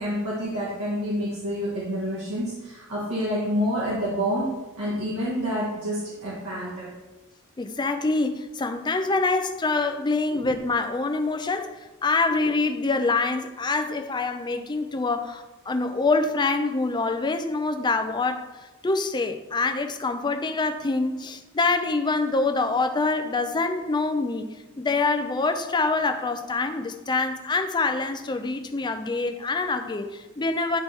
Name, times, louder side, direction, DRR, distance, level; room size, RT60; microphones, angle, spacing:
voice 1, 0.0-4.5 4.8-6.9 10.3-10.5, equal, 75° right, 1.6 m, -28 dB
voice 2, 7.6-18.5 18.8-24.5 24.8-30.8, left 3 dB, 20° left, 0.4 m, -25 dB
9.4 x 3.3 x 4.4 m
head